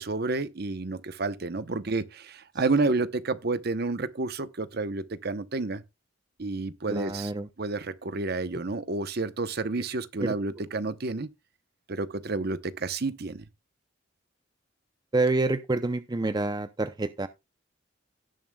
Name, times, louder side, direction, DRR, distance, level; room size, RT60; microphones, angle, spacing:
voice 1, 0.0-5.8 6.4-7.3 7.6-11.3 11.9-13.4, right 3 dB, 55° right, 0.8 m, -30 dB
voice 2, 6.9-7.5 10.2-10.3 15.1-17.3, right 2 dB, 20° right, 0.5 m, -27 dB
17.5 x 7.1 x 2.3 m
head